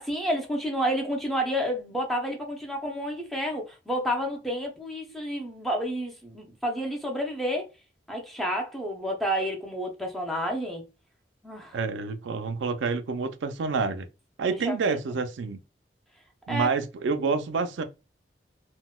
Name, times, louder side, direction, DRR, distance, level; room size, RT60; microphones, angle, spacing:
voice 1, 0.0-7.7 8.1-10.8 11.4-11.8 14.5-15.0 16.5-16.7, equal, ahead, 0.6 m, -30 dB
voice 2, 11.7-14.1 14.4-15.6 16.5-17.8, right 4 dB, 85° right, 0.4 m, -28 dB
3.9 x 2.1 x 2.2 m
head